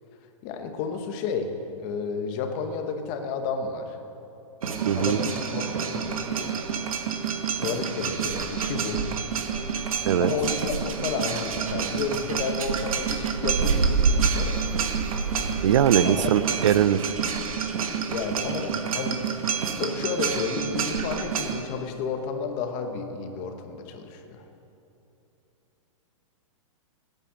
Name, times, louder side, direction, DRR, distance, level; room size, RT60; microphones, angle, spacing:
voice 1, 0.4-1.5 1.8-4.0 4.9-6.5 7.6-9.0 9.8-14.6 16.0-16.3 18.1-19.2 19.8-24.4, left 5 dB, 30° left, 6 dB, 1.0 m, -31 dB
sound 1, 4.6-21.6, right 6 dB, 85° right, 1.4 m, -28 dB
voice 2, 4.8-5.2 10.0-10.3 15.6-17.1, right 10 dB, 60° right, 16 dB, 0.6 m, -21 dB
17.5 x 9.0 x 6.3 m, 3.0 s
supercardioid pair, 170°, 17 cm